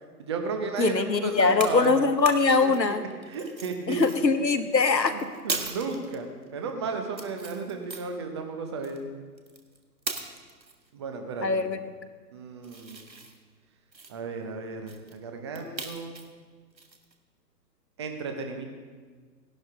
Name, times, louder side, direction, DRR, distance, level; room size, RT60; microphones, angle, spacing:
voice 1, 0.2-1.9 2.6-3.0 3.2-4.0 4.4-4.5 5.1-9.0 10.9-11.6 12.3-13.0 14.1-16.2 18.0-18.6, right 4 dB, 15° right, 5 dB, 0.7 m, -34 dB
voice 2, 0.8-3.0 3.9-5.1 11.4-11.8, left 4 dB, 80° left, 10 dB, 1.1 m, -22 dB
sound 1, 1.3-4.2 4.5-6.1 6.4-6.5 7.1-8.2 8.8-9.0 9.4-10.9 12.6-13.4 13.9-14.1 14.9-15.2 15.5-16.3 16.8-17.1, right 3 dB, 85° right, 1.6 m, -38 dB
16.5 x 11.5 x 3.6 m, 1.5 s
figure-of-eight pair, 130°, 50 cm